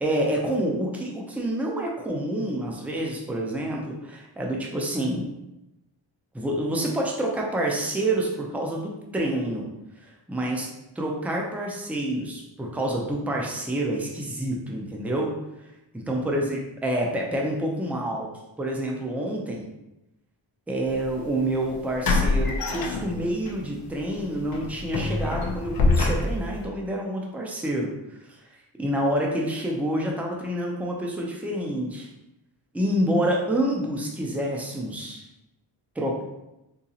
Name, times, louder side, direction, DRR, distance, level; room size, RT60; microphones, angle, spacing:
voice 1, 0.0-5.3 6.3-9.7 10.0-10.7 11.0-15.3 15.9-18.3 18.6-19.7 20.7-27.9 28.2-28.4 28.8-32.1 32.7-35.2 36.0-36.2, right 1 dB, 5° right, -1 dB, 0.4 m, -28 dB
sound 1, 20.9-21.1 22.0-23.5 23.9-24.1 24.5-26.6, left 3 dB, 50° left, 0.5 m, -24 dB
3.9 x 2.8 x 2.8 m, 0.92 s
wide cardioid pair, 170°, 47 cm